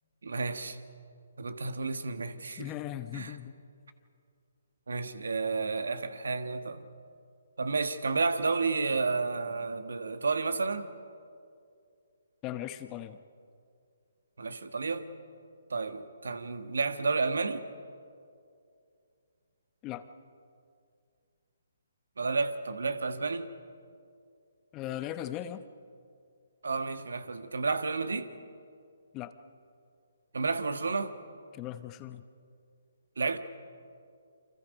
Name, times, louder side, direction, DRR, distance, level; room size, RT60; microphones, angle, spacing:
voice 1, 0.2-0.8 1.4-2.7 3.1-3.3 4.9-6.9 7.6-10.9 14.4-15.2 15.7-17.6 22.2-23.5 26.6-28.3 30.3-31.1 33.2-33.4, right 4 dB, 70° right, 10 dB, 1.5 m, -31 dB
voice 2, 2.6-3.5 12.4-13.2 19.8-20.0 24.7-25.6 29.1-29.3 31.5-32.3, left 12 dB, 25° left, 12 dB, 0.9 m, -38 dB
29.0 x 25.5 x 5.3 m, 2.4 s
figure-of-eight pair, 135°, 0 cm